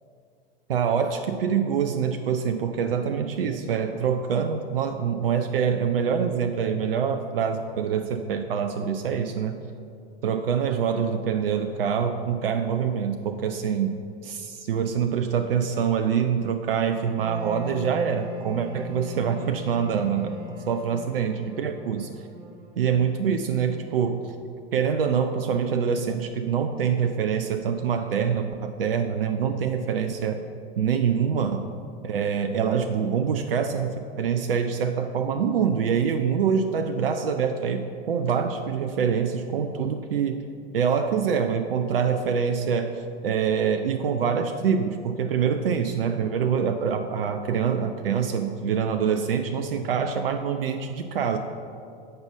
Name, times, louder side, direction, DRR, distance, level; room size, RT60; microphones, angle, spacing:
voice 1, 0.7-9.6 10.2-14.0 14.3-20.3 20.7-22.1 22.8-24.3 24.7-30.4 30.8-31.7 32.0-40.4 40.7-51.4, right 7 dB, 75° right, 7 dB, 0.5 m, -25 dB
Wind instrument woodwind instrument, 17.2-24.1, left 4 dB, 30° right, 1.1 m, -40 dB
6.6 x 5.5 x 6.9 m, 2.5 s
figure-of-eight pair, 85°, 29 cm